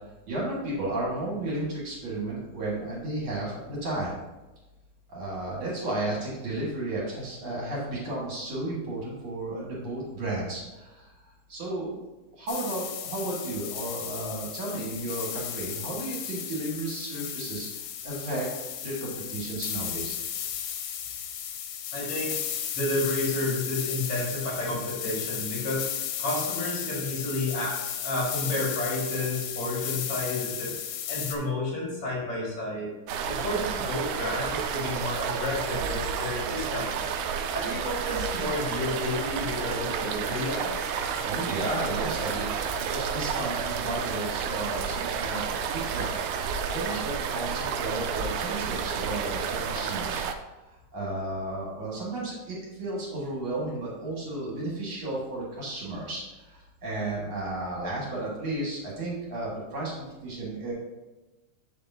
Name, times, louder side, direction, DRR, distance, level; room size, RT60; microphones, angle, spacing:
voice 1, 0.3-4.2 5.1-11.1 11.5-11.9 12.2-17.7 18.0-20.2 41.2-46.1 46.7-50.2 50.6-60.7, right 2 dB, 45° right, -5 dB, 1.7 m, -33 dB
sound 1, 12.5-31.4, left 9 dB, 90° left, 2.9 m, -34 dB
voice 2, 21.9-22.3 22.7-25.9 26.2-30.7 31.1-32.9 33.2-37.1 37.5-41.0, left 2 dB, 45° left, -4 dB, 2.2 m, -31 dB
sound 2, 33.1-50.3, right 6 dB, 85° right, 2.6 m, -31 dB
7.7 x 6.8 x 2.8 m, 1.1 s
omnidirectional pair, 5.0 m